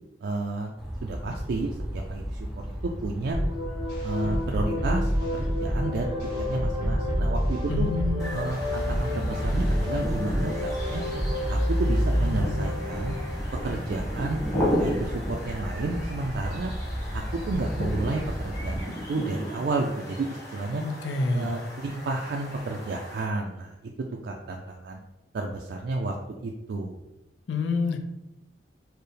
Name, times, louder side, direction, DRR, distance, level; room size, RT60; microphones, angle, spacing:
voice 1, 0.2-0.7 1.0-3.4 4.0-7.9 8.3-11.0 11.5-13.2 13.6-16.7 17.1-20.8 21.3-25.0 25.3-26.2 26.4-27.0, right 3 dB, 65° right, 0 dB, 0.3 m, -31 dB
sound 1, 0.8-18.8, equal, ahead, 0.5 m, -34 dB
sound 2, 3.3-13.4, equal, 55° left, 1.1 m, -28 dB
voice 2, 7.7-8.4 20.8-21.5 27.5-28.0, left 3 dB, 90° left, 6 dB, 0.4 m, -27 dB
sound 3, 8.2-23.3, equal, 20° left, 1.3 m, -35 dB
4.5 x 2.1 x 3.2 m, 0.94 s
head